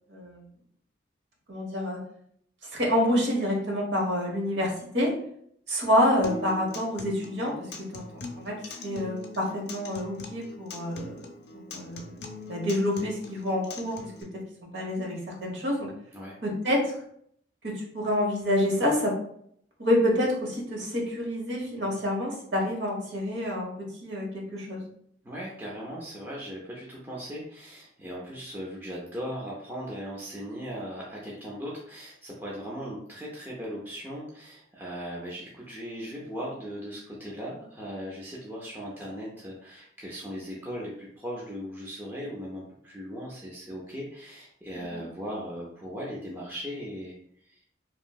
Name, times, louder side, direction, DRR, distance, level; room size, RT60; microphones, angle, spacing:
voice 1, 0.1-0.5 1.5-2.0 2.6-5.1 5.7-11.2 11.5-14.1 14.7-15.9 16.4-16.9 17.6-19.2 19.8-24.8 44.8-45.0, left 1 dB, 75° right, -1 dB, 0.9 m, -28 dB
Acoustic guitar, 6.2-14.2, left 2 dB, 60° left, 0.4 m, -42 dB
voice 2, 25.2-47.2 47.4-47.6, equal, 10° right, -5 dB, 0.4 m, -38 dB
2.9 x 2.6 x 2.2 m, 0.67 s
head